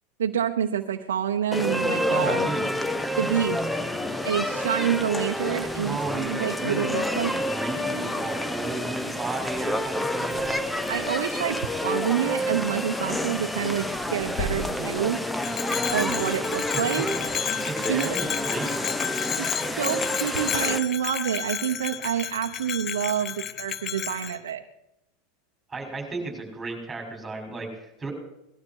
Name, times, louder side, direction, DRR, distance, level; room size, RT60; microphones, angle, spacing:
voice 1, 0.2-2.5 3.2-3.6 4.2-7.4 10.9-15.2 15.9-17.1 17.9-18.1 19.3-24.6, right 9 dB, 90° right, 3 dB, 0.9 m, -28 dB
sound 1, 1.5-20.8, left 1 dB, 5° left, 1.1 m, -29 dB
voice 2, 2.1-2.6 5.8-10.6 16.7-16.8 17.6-18.9 25.7-28.1, right 3 dB, 15° right, 2 dB, 6.5 m, -34 dB
sound 2, 5.6-15.9, left 2 dB, 55° left, 3.0 m, -43 dB
Bell, 15.4-24.4, left 10 dB, 35° left, 0.8 m, -32 dB
19.5 x 12.5 x 4.8 m, 0.87 s
hypercardioid pair, 110°, 0 cm